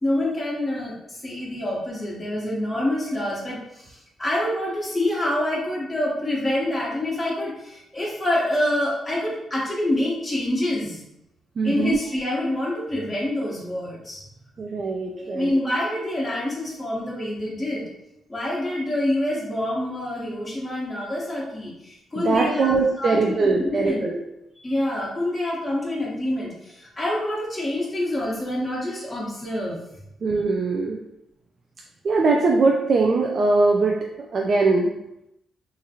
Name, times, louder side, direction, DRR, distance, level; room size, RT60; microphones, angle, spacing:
voice 1, 0.0-11.0 11.6-14.2 15.1-17.8 18.3-24.0 24.6-29.8, left 1 dB, 15° left, -6 dB, 0.8 m, -26 dB
voice 2, 11.6-12.0 14.6-15.5 22.3-24.2 30.2-31.0 32.0-34.9, right 3 dB, 55° right, 0 dB, 0.3 m, -21 dB
2.8 x 2.5 x 2.7 m, 0.84 s
cardioid pair, 80°, 0 cm